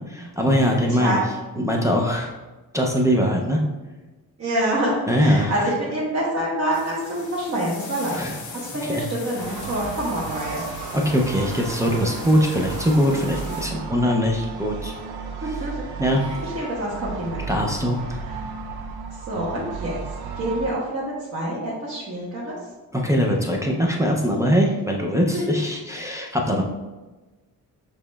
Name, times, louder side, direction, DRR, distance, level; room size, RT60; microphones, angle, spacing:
voice 1, 0.1-1.2 1.6-2.3 2.7-3.6 5.1-5.5 8.2-8.4 8.8-9.0 10.9-14.9 16.0-16.3 17.5-18.2 22.9-26.6, equal, 10° right, -2 dB, 0.3 m, -22 dB
voice 2, 0.7-1.2 4.4-10.6 15.4-15.9 16.2-17.4 19.3-20.0 20.4-22.5 25.3-25.4, right 1 dB, 40° right, -6 dB, 1.0 m, -27 dB
sound 1, 6.7-13.6, left 4 dB, 55° left, 0.7 m, -39 dB
sound 2, 9.4-20.7, right 5 dB, 90° right, 0.6 m, -34 dB
6.7 x 3.0 x 2.2 m, 1.2 s
wide cardioid pair, 155°, 36 cm